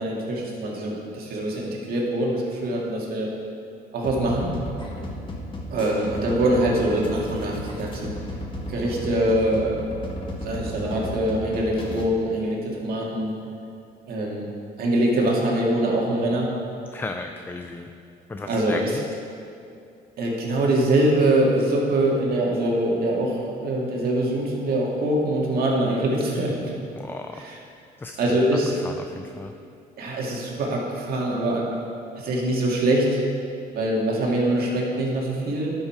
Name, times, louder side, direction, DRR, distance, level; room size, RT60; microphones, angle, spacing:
voice 1, 0.0-3.3 3.9-4.5 5.7-8.1 8.7-9.8 10.4-13.3 14.1-14.5 14.8-16.5 18.5-18.8 20.2-26.7 28.2-28.7 30.0-31.7 32.2-33.2 33.7-35.7, right 1 dB, 65° right, -2 dB, 2.0 m, -23 dB
sound 1, 4.0-12.0, left 1 dB, 30° left, 1.6 m, -34 dB
voice 2, 16.9-17.9 18.3-19.1 26.9-27.5 28.0-28.4 28.7-29.5, left 3 dB, 10° left, 6 dB, 0.4 m, -35 dB
11.5 x 5.7 x 4.6 m, 2.5 s
cardioid pair, 110°, 17 cm